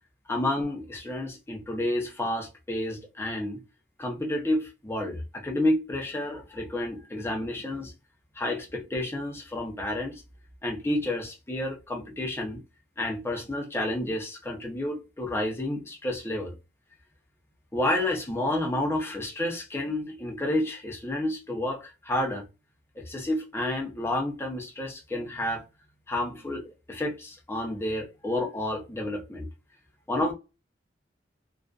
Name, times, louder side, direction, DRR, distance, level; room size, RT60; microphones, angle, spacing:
voice 1, 0.3-3.6 4.0-7.9 8.4-10.2 10.6-12.6 13.0-16.5 17.7-22.4 23.0-25.6 26.1-29.5 30.1-30.3, left 1 dB, 15° left, 0.6 m, -30 dB
2.4 x 2.4 x 2.3 m
head